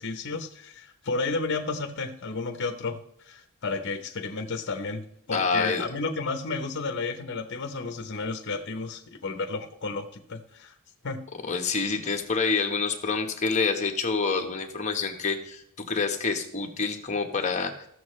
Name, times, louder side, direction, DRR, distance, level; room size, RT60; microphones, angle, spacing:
voice 1, 0.0-10.7 11.0-11.2, left 3 dB, 55° left, 6 dB, 0.8 m, -32 dB
voice 2, 5.3-5.8 11.5-17.7, left 4 dB, 30° left, 3 dB, 1.1 m, -27 dB
15.5 x 6.5 x 3.2 m, 0.70 s
head